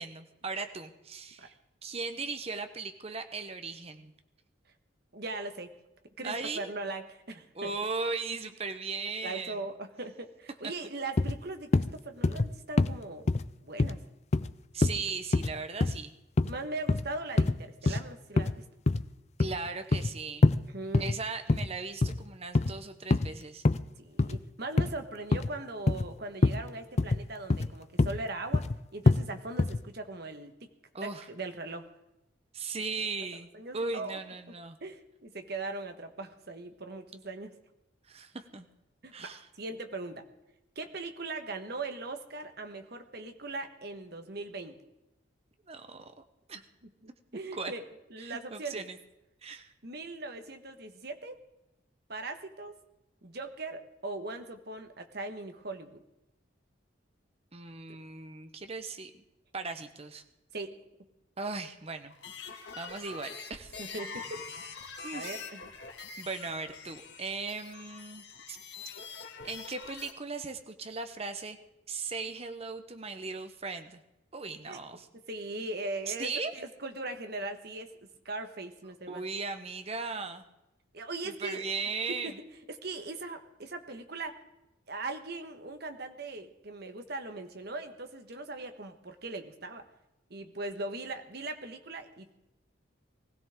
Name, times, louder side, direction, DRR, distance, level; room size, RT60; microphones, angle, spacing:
voice 1, 0.0-1.5 1.8-4.1 6.2-6.7 7.5-9.6 14.7-16.1 17.8-18.0 19.4-20.5 21.0-23.6 30.9-31.3 32.5-33.5 33.7-34.8 38.1-38.7 39.1-39.5 45.7-46.6 47.5-47.7 48.2-49.0 49.4-49.7 57.5-59.2 59.5-60.2 61.4-62.1 62.8-63.7 65.0-65.4 66.2-68.6 69.1-71.6 71.9-74.0 74.3-75.1 76.1-76.5 79.1-80.4 81.2-82.4, right 4 dB, 30° right, 8 dB, 0.9 m, -38 dB
voice 2, 5.1-5.7 6.2-7.7 9.2-13.3 13.6-14.0 16.5-18.7 20.7-21.1 24.0-30.7 31.0-31.9 33.5-34.2 34.8-37.5 39.0-40.2 40.7-44.8 47.0-47.8 48.1-48.8 49.8-51.4 52.1-52.7 53.2-56.0 57.9-58.0 60.5-60.8 63.8-64.6 65.1-65.6 74.7-74.8 75.1-79.2 80.9-81.7 82.1-82.3 82.7-84.4 84.9-89.8 90.3-92.4, right 2 dB, 55° right, 7 dB, 1.4 m, -40 dB
sound 1, 11.2-11.4 11.7-11.9 12.2-12.5 12.8-12.9 13.3-13.4 13.8-13.9 14.3-14.5 14.8-15.0 15.3-15.5 15.8-16.0 16.4-16.5 16.9-17.0 17.4-17.6 17.9-18.0 18.4-18.5 18.9-19.0 19.4-20.1 20.4-20.6 20.9-21.2 21.5-21.7 22.0-22.2 22.5-22.7 23.1-23.3 23.6-23.8 24.2-24.4 24.8-24.9 25.3-25.5 25.9-26.1 26.4-26.6 27.0-27.2 27.5-27.7 28.0-28.2 28.5-28.8 29.1-29.2 29.6-29.8, left 2 dB, 35° left, 0.4 m, -25 dB
sound 2, 62.1-70.1, left 5 dB, 55° left, 2.0 m, -44 dB
20.5 x 16.0 x 3.7 m, 0.91 s
head